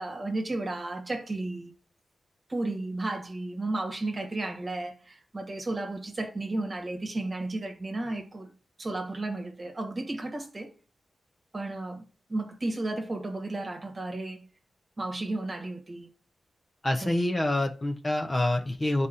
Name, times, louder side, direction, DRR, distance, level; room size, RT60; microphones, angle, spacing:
voice 1, 0.0-1.7 2.5-8.5 8.8-10.7 11.5-12.0 12.3-14.5 15.0-16.1 17.0-17.1, right 2 dB, 30° right, 1.2 m, -33 dB
voice 2, 16.8-19.1, left 1 dB, 25° left, 0.6 m, -26 dB
12.0 x 4.1 x 2.5 m
wide cardioid pair, 100°, 0 cm